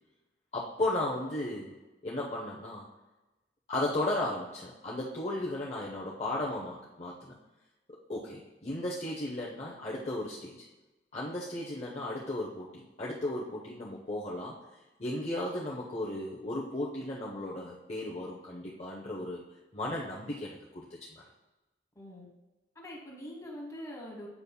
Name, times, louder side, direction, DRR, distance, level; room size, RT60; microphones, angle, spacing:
voice 1, 0.5-1.7 2.0-2.9 3.7-7.3 7.9-10.6 11.1-14.5 15.0-19.4 19.7-21.2, left 1 dB, 35° left, -4 dB, 0.7 m, -35 dB
voice 2, 21.9-22.3 22.7-24.3, equal, 15° left, -2 dB, 1.4 m, -43 dB
8.3 x 5.3 x 2.3 m, 1.1 s
head